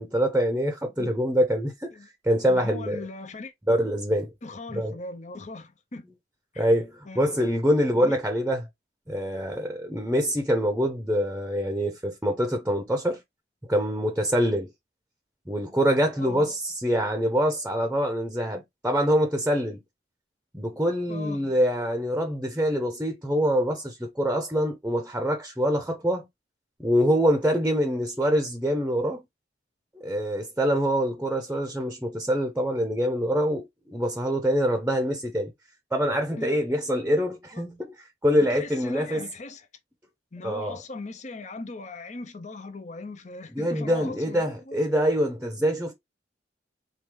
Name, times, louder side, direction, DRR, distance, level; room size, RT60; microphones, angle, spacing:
voice 1, 0.0-1.9 2.2-3.0 3.7-4.3 4.7-4.9 6.6-8.6 9.1-13.2 13.7-14.7 15.5-19.8 20.5-26.3 26.8-29.2 30.0-35.5 35.9-37.9 38.2-39.3 40.4-40.8 43.5-45.9, equal, 10° right, 0.8 m, -25 dB
voice 2, 2.5-3.5 4.4-6.1 6.5-6.7 7.1-7.5 8.0-8.2 16.2-16.5 21.1-21.6 36.4-36.6 37.5-37.6 38.4-39.7 40.3-44.8, left 3 dB, 40° left, 0.8 m, -39 dB
4.7 x 2.7 x 3.6 m
head